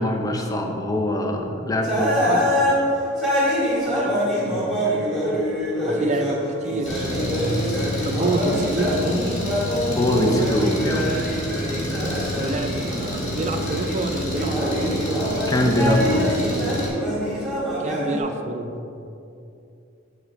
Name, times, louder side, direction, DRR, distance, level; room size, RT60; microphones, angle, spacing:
voice 1, 0.0-2.5 9.9-11.1 15.5-16.4, left 1 dB, 20° left, 2 dB, 0.6 m, -23 dB
sound 1, 1.8-13.9 14.2-18.2, equal, ahead, 1.7 m, -25 dB
voice 2, 3.9-4.7 5.9-7.8 8.0-9.4 12.3-15.0 17.8-18.7, right 2 dB, 35° right, 5 dB, 0.5 m, -28 dB
Engine, 6.9-16.9, equal, 35° left, 1.4 m, -29 dB
6.4 x 4.1 x 6.3 m, 2.6 s
head